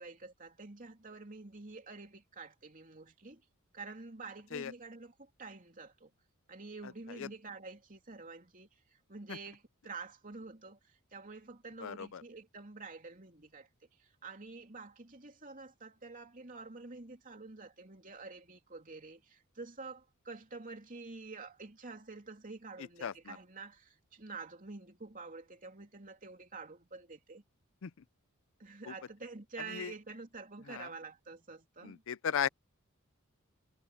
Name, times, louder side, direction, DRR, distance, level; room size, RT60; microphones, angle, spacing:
voice 1, 0.0-3.4 3.7-6.1 6.5-13.7 14.0-27.4 28.6-32.0, right 3 dB, 35° right, 3.1 m, -48 dB
voice 2, 11.8-12.2 23.0-23.4 27.8-27.9 28.9-29.0 29.7-29.9 30.7-30.9 31.8-32.5, left 8 dB, 60° left, 0.5 m, -36 dB
head